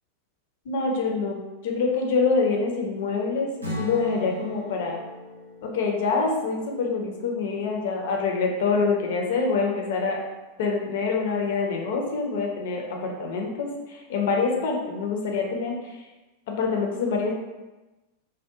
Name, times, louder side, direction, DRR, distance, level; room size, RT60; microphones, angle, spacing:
voice 1, 0.7-5.0 5.6-10.2 10.6-16.0 16.5-17.3, left 4 dB, 55° left, 1 dB, 0.5 m, -26 dB
Strum, 3.6-7.8, left 1 dB, 80° right, 0.5 m, -38 dB
2.6 x 2.1 x 2.4 m, 1.1 s
figure-of-eight pair, 90°, 0 cm